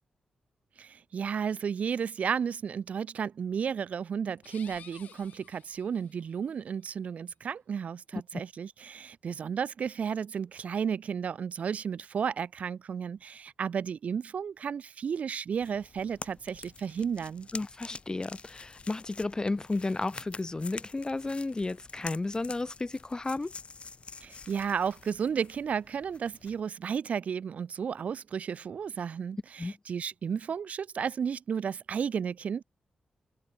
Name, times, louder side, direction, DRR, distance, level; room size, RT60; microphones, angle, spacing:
voice 1, 0.8-17.5 24.2-32.6, right 7 dB, 70° right, 2.2 m, -33 dB
sound 1, 4.4-6.4, left 9 dB, 80° left, 3.6 m, -53 dB
sound 2, 15.6-26.6, left 4 dB, 50° left, 1.7 m, -47 dB
voice 2, 17.5-23.5 29.6-29.7, left 2 dB, 30° left, 2.8 m, -33 dB
supercardioid pair, 45°, 2 cm